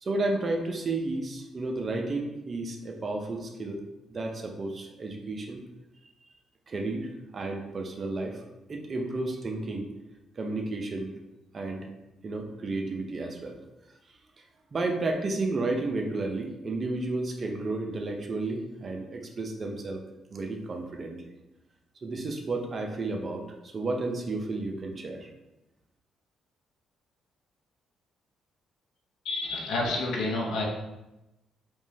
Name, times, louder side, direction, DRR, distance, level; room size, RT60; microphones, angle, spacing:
voice 1, 0.0-3.8 4.1-5.6 6.7-7.1 7.3-8.4 8.7-9.9 10.4-11.1 11.5-11.9 12.2-13.6 14.4-14.5 14.7-20.0 20.3-21.2 22.0-25.3, right 2 dB, 40° right, 3 dB, 0.6 m, -32 dB
voice 2, 29.2-30.6, left 2 dB, 80° left, -1 dB, 0.7 m, -29 dB
3.5 x 3.0 x 2.8 m, 0.96 s
cardioid pair, 90°, 0 cm